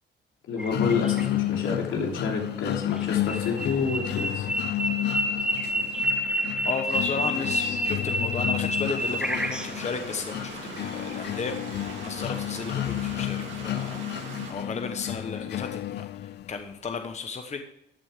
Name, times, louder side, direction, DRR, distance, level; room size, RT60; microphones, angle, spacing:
voice 1, 0.5-4.5 7.4-7.8, left 4 dB, 75° left, 0 dB, 3.1 m, -29 dB
sound 1, 0.6-1.3 3.0-9.9, equal, 5° right, 1.2 m, -29 dB
sound 2, 0.7-16.7, left 14 dB, 60° left, 0.4 m, -32 dB
voice 2, 6.6-11.5 12.0-17.6, left 5 dB, 35° left, 6 dB, 1.0 m, -34 dB
sound 3, 9.0-14.5, right 4 dB, 75° right, 3.1 m, -41 dB
14.0 x 8.8 x 3.6 m, 0.85 s
cardioid pair, 90°, 20 cm